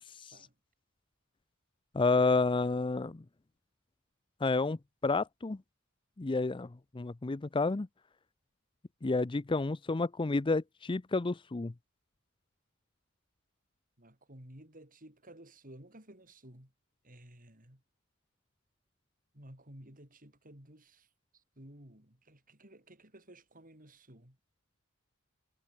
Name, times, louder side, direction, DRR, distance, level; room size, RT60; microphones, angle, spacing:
voice 1, 1.9-3.2 4.4-5.6 6.2-7.9 9.0-11.7, left 3 dB, 25° left, 0.5 m, -30 dB
voice 2, 14.0-16.7 17.0-17.8 19.3-21.1 21.3-24.4, right 1 dB, 40° right, 7.4 m, -54 dB
head